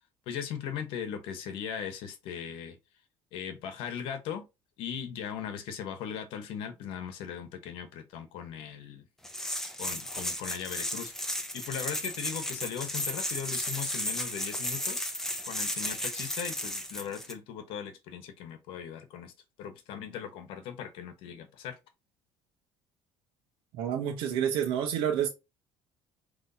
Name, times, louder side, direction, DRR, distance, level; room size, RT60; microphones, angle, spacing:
voice 1, 0.3-2.8 3.3-4.4 4.8-9.0 9.8-11.1 11.5-19.3 19.6-21.8, left 8 dB, 75° left, 1.0 m, -39 dB
sound 1, 9.2-17.3, left 1 dB, 5° left, 0.8 m, -34 dB
voice 2, 23.7-25.3, right 9 dB, 75° right, 1.0 m, -29 dB
5.8 x 3.1 x 2.7 m
cardioid pair, 130°, 9 cm